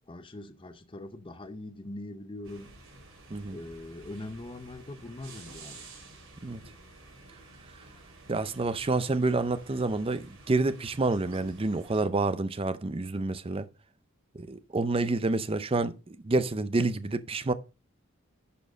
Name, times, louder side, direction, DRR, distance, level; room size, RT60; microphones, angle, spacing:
voice 1, 0.1-2.8 3.5-5.9, left 1 dB, 25° left, 0.7 m, -42 dB
sound 1, 2.4-12.1, right 2 dB, 90° right, 3.8 m, -51 dB
voice 2, 8.3-13.7 14.3-17.5, right 3 dB, 30° right, 0.5 m, -28 dB
11.0 x 4.5 x 5.1 m
head